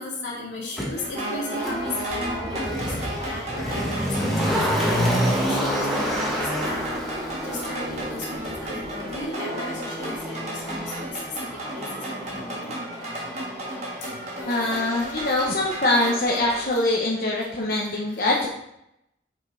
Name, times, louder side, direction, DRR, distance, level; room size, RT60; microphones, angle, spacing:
voice 1, 0.0-6.8 7.4-11.4 11.8-12.7 14.0-14.1 14.4-18.2, left 2 dB, 85° left, -4 dB, 2.3 m, -37 dB
Motor vehicle (road), 0.8-0.9 1.6-14.5 14.8-14.9, equal, ahead, 1.1 m, -29 dB
sound 1, 1.0-16.6, right 1 dB, 35° right, 1.6 m, -33 dB
voice 2, 14.5-18.5, left 2 dB, 50° left, -3 dB, 0.8 m, -23 dB
5.9 x 5.1 x 3.8 m, 0.80 s
head